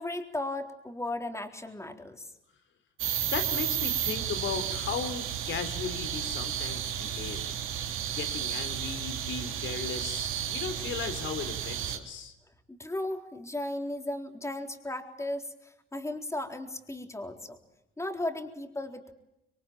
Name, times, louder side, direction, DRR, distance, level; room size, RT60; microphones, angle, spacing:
voice 1, 0.0-2.3 12.7-17.6 18.0-19.1, left 1 dB, 15° left, 5 dB, 4.0 m, -36 dB
sound 1, 3.0-12.0, right 10 dB, 90° right, 3.2 m, -33 dB
voice 2, 3.2-7.5 8.1-12.3, left 6 dB, 75° left, 11 dB, 3.8 m, -36 dB
26.5 x 22.5 x 9.1 m, 0.87 s
cardioid pair, 90°, 20 cm